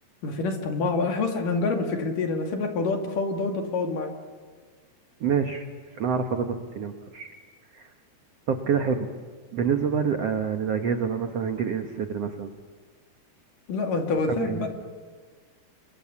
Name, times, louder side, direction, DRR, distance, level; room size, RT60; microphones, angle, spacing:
voice 1, 0.2-4.1 13.7-14.7, left 3 dB, 55° left, 4 dB, 3.8 m, -27 dB
voice 2, 5.2-5.7 6.0-7.3 7.7-7.9 8.5-9.1 9.5-12.5 14.3-14.7, right 6 dB, 80° right, 6 dB, 1.4 m, -27 dB
29.0 x 24.0 x 7.2 m, 1.5 s
omnidirectional pair, 5.0 m